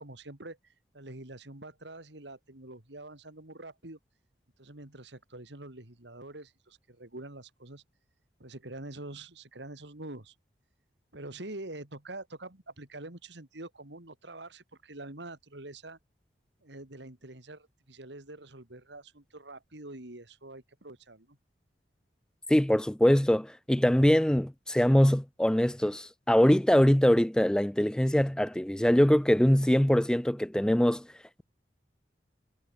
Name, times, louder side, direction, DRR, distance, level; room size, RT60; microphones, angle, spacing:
voice 1, 0.0-4.0 4.6-7.8 8.4-10.3 11.1-16.0 16.6-21.4, right 2 dB, 75° right, 2.9 m, -45 dB
voice 2, 22.5-31.1, equal, 5° left, 0.3 m, -23 dB
head